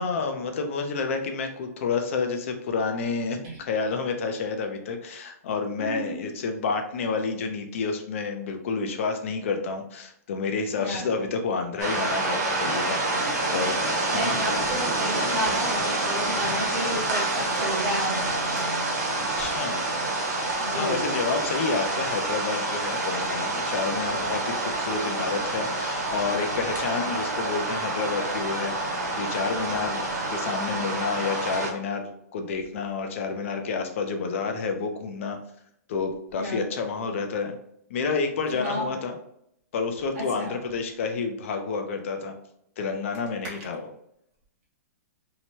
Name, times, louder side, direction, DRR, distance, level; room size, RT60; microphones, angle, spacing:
voice 1, 0.0-14.6 19.2-19.8 20.7-35.4 35.9-37.5 37.9-39.1 39.7-42.3 42.8-43.9, left 4 dB, 50° left, 5 dB, 0.5 m, -29 dB
voice 2, 5.8-6.3 10.7-11.2 13.2-13.3 13.8-18.3 20.6-21.5 36.4-36.6 38.5-38.9 40.1-40.5 43.5-43.6, right 1 dB, 35° right, -6 dB, 0.9 m, -32 dB
sound 1, 11.8-31.7, right 2 dB, 85° right, 1.0 m, -27 dB
2.8 x 2.1 x 3.0 m, 0.74 s
hypercardioid pair, 165°, 9 cm